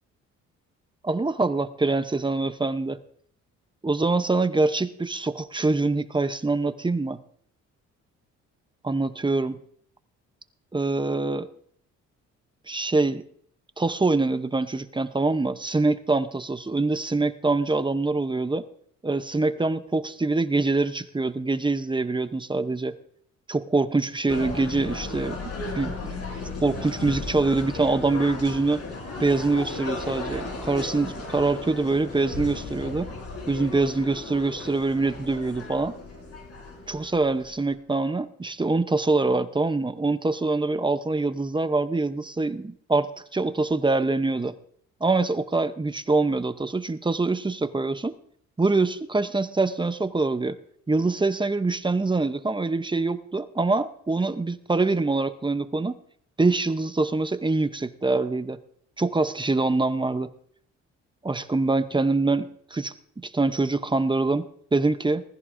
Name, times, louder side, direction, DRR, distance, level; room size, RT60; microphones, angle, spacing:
voice 1, 1.0-3.0 3.8-7.2 8.8-9.6 10.7-11.5 12.7-13.2 13.8-18.6 19.0-23.0 23.5-25.4 25.8-26.2 26.6-28.8 29.2-33.1 33.5-36.0 36.9-44.5 45.0-48.2 48.6-50.6 50.9-56.0 56.4-58.6 59.0-60.3 61.2-62.9 63.2-65.2, right 3 dB, 15° right, 11 dB, 0.8 m, -24 dB
sound 1, 24.3-37.7, left 3 dB, 55° left, 4.1 m, -35 dB
20.0 x 14.5 x 2.7 m, 0.62 s
cardioid pair, 90°, 30 cm